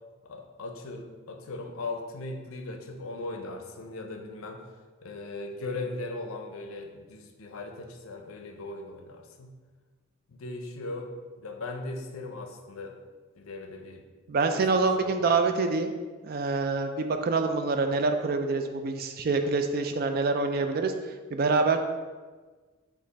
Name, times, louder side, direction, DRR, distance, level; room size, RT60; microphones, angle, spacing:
voice 1, 0.2-4.7 5.0-9.5 10.3-13.0 13.4-14.1 14.5-15.4, left 2 dB, 75° left, 4 dB, 0.5 m, -38 dB
voice 2, 14.3-15.9 16.2-20.9 21.3-21.8, right 4 dB, 45° right, 6 dB, 0.3 m, -26 dB
5.2 x 2.4 x 3.9 m, 1.4 s
head